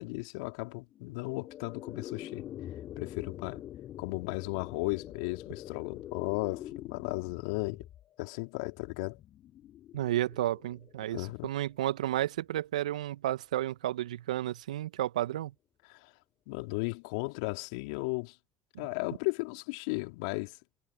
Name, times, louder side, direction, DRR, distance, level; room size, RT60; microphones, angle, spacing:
voice 1, 0.0-2.5 3.0-3.6 4.0-7.9 8.2-9.2 11.1-11.5 15.9-16.1 16.5-18.4 18.8-20.6, left 28 dB, 70° left, 3.3 m, -35 dB
sound 1, 0.9-12.1, left 12 dB, 55° left, 5.2 m, -46 dB
voice 2, 9.9-15.5, right 13 dB, 80° right, 1.6 m, -32 dB
figure-of-eight pair, 55°, 4 cm